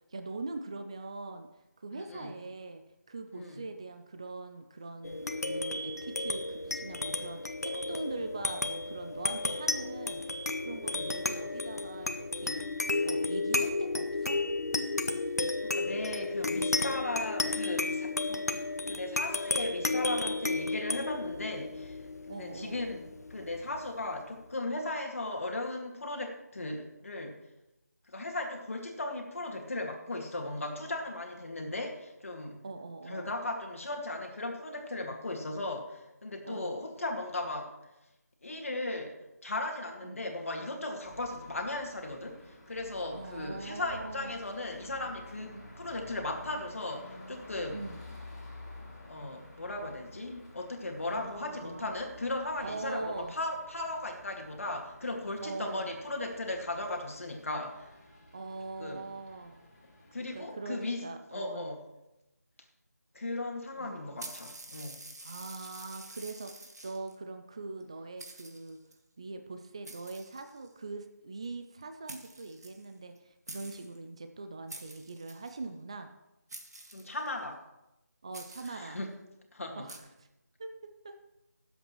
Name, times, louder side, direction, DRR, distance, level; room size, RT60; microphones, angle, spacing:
voice 1, 0.1-1.5 1.8-2.8 3.1-12.7 13.0-14.4 22.3-22.8 32.6-33.3 36.4-36.8 40.0-40.2 43.1-44.4 45.5-45.7 47.7-48.0 51.1-51.9 52.6-53.3 55.4-55.9 58.3-59.6 60.3-61.7 63.8-64.1 65.2-68.8 69.2-76.1 78.2-79.0 79.8-80.3 80.6-80.7 81.0-81.1, right 3 dB, 20° right, 7 dB, 0.4 m, -42 dB
voice 2, 1.9-2.3 3.3-3.7 10.9-11.1 15.6-18.5 18.9-22.0 22.3-23.0 23.3-27.4 28.1-32.6 33.1-37.7 38.4-39.2 39.4-47.8 49.0-57.9 58.8-59.0 60.1-61.8 63.1-65.0 76.9-77.6 78.6-79.1 79.5-79.9, left 2 dB, 55° left, 2 dB, 2.2 m, -37 dB
sound 1, 5.0-23.9, left 2 dB, 70° left, 1.0 m, -33 dB
sound 2, 41.0-60.4, left 2 dB, 20° left, 2.4 m, -51 dB
sound 3, 64.2-67.1 67.8-67.9 68.2-68.9 69.8-70.8 71.8-71.9 72.1-73.2 73.5-74.0 74.7-75.6 76.5-77.4 78.3-78.9 79.9-80.0, right 2 dB, 75° right, 1.9 m, -48 dB
20.0 x 8.0 x 3.2 m, 0.93 s
figure-of-eight pair, 165°, 9 cm